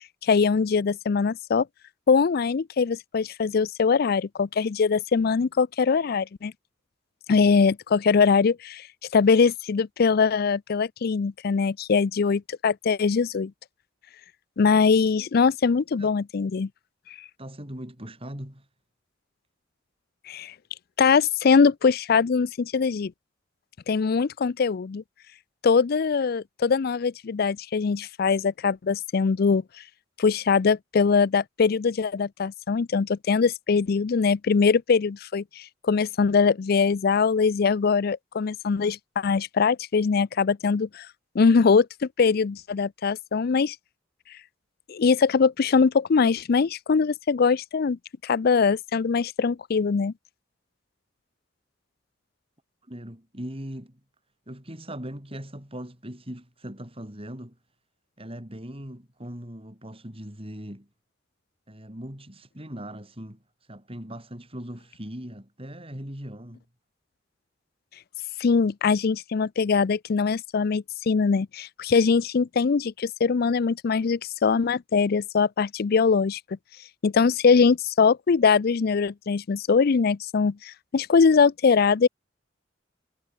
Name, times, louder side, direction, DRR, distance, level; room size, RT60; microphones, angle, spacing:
voice 1, 0.2-1.7 2.1-6.5 7.3-8.8 9.1-13.5 14.6-16.7 20.3-20.5 21.0-23.1 23.9-25.0 25.6-29.6 30.2-41.1 41.3-43.8 44.9-50.1 68.4-76.4 77.0-82.1, left 5 dB, 55° left, 0.4 m, -22 dB
voice 2, 17.4-18.7 52.9-54.0 54.5-57.6 58.2-60.9 61.7-63.4 63.7-66.6, equal, 30° right, 6.2 m, -39 dB
head